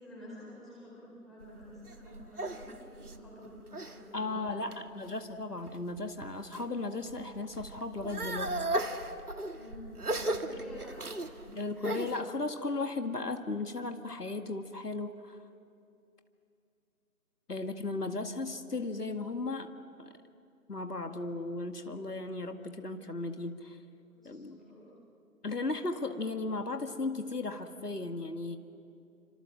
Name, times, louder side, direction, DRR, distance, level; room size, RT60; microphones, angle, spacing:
voice 1, 0.0-4.9 9.5-11.9 24.1-24.9, left 1 dB, ahead, -9 dB, 4.8 m, -49 dB
sound 1, 1.4-4.0 4.5-5.1 5.7-6.7 7.0-12.2, right 1 dB, 70° right, 1.9 m, -36 dB
voice 2, 4.1-8.7 11.6-15.4 17.5-19.7 20.0-20.1 20.7-23.8 24.2-24.6 25.4-28.6, left 3 dB, 80° left, 6 dB, 2.1 m, -36 dB
29.5 x 25.5 x 7.6 m, 2.6 s
figure-of-eight pair, 160°, 46 cm